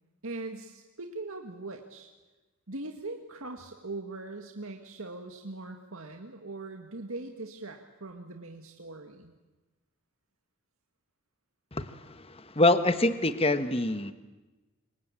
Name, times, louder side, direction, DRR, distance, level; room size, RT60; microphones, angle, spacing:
voice 1, 0.2-2.1 2.7-9.3, right 2 dB, 75° right, 3 dB, 2.0 m, -41 dB
voice 2, 11.7-14.1, left 2 dB, 25° left, 11 dB, 1.3 m, -26 dB
28.0 x 24.5 x 8.8 m, 1.2 s
head